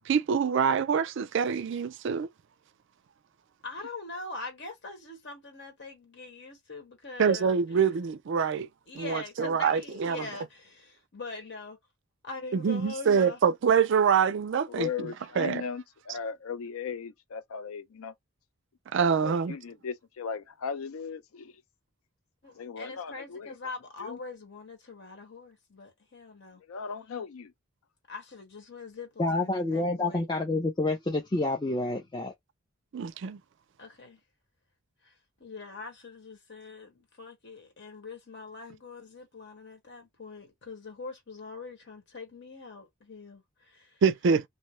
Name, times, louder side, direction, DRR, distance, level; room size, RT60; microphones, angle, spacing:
voice 1, 0.1-2.3 7.2-8.7 8.9-10.3 12.5-14.9 15.4-15.6 18.9-19.5 32.9-33.4 44.0-44.5, right 6 dB, 55° right, 0.3 m, -25 dB
voice 2, 3.6-7.5 8.9-11.8 12.2-13.4 22.4-26.6 28.1-30.3 33.8-34.2 35.0-35.1 35.4-44.0, left 3 dB, 55° left, 1.1 m, -43 dB
voice 3, 14.7-18.1 19.2-21.6 22.5-23.6 24.0-24.2 26.6-27.5, left 6 dB, 80° left, 0.5 m, -37 dB
voice 4, 29.2-32.3, left 2 dB, 20° left, 0.4 m, -28 dB
2.6 x 2.0 x 3.0 m
head